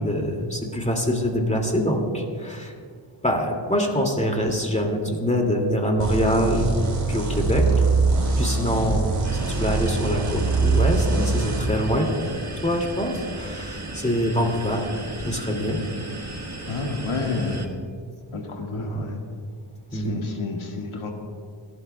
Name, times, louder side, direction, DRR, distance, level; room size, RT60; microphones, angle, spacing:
voice 1, 0.0-2.7 3.2-6.7 7.1-7.7 8.4-12.2 12.6-14.8 15.2-15.8 17.2-17.4 18.8-19.0 19.9-20.2, equal, 15° left, 1 dB, 2.3 m, -24 dB
sound 1, 6.0-11.6, right 4 dB, 85° right, 4.2 m, -23 dB
sound 2, 9.2-17.7, right 2 dB, 35° right, 1.5 m, -35 dB
voice 2, 16.7-17.6 18.3-19.2 19.9-21.1, left 3 dB, 80° left, 1 dB, 1.9 m, -30 dB
28.5 x 11.5 x 2.3 m, 2.1 s
wide cardioid pair, 75°, 48 cm